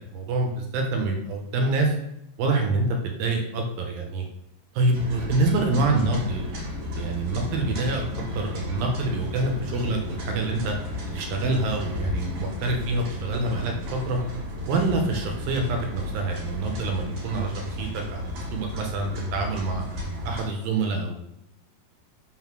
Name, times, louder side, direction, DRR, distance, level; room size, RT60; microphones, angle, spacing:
voice 1, 0.1-1.9 2.4-4.2 4.7-6.5 7.0-8.0 8.4-10.7 11.1-14.2 14.7-19.8 20.2-21.2, right 2 dB, 75° right, 3 dB, 2.5 m, -26 dB
sound 1, 4.9-20.4, left 1 dB, 55° right, 3.3 m, -33 dB
5.8 x 3.9 x 6.0 m, 0.81 s
omnidirectional pair, 4.6 m